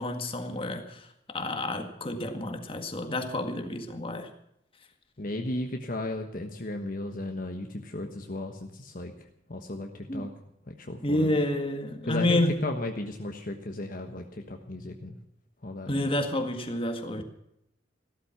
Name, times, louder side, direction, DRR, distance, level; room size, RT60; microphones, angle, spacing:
voice 1, 0.0-4.3 10.1-10.3 11.0-12.6 15.9-17.2, left 1 dB, 30° left, 6 dB, 1.8 m, -29 dB
voice 2, 5.2-9.1 9.5-10.3 10.7-11.3 12.0-15.2 15.6-16.1 17.2-17.3, left 1 dB, 50° left, 4 dB, 1.3 m, -35 dB
15.0 x 13.0 x 5.9 m, 0.79 s
head